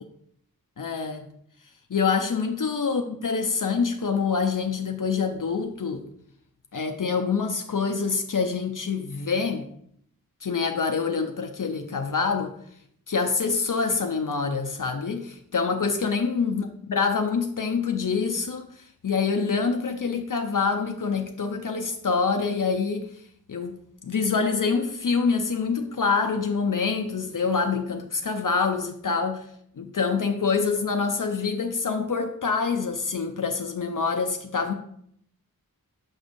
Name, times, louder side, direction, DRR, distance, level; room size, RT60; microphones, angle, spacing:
voice 1, 0.8-1.3 1.9-6.0 6.7-9.7 10.4-12.5 13.1-23.1 23.5-23.8 24.0-29.4 29.8-34.7, left 5 dB, 55° left, 5 dB, 0.6 m, -26 dB
6.6 x 6.2 x 2.6 m, 0.68 s
wide cardioid pair, 65°, 37 cm